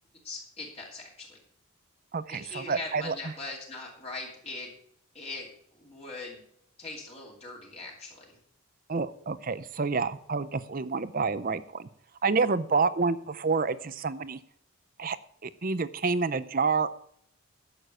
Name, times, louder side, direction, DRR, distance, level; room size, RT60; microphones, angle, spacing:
voice 1, 0.2-1.4 2.3-4.7 5.1-5.5 5.8-6.4 6.8-8.4, left 3 dB, 25° left, -2 dB, 2.7 m, -41 dB
voice 2, 2.1-3.1 8.9-11.9 12.2-14.4 15.0-15.2 15.4-16.9, right 4 dB, 40° right, 15 dB, 0.5 m, -28 dB
11.0 x 7.1 x 6.3 m, 0.68 s
head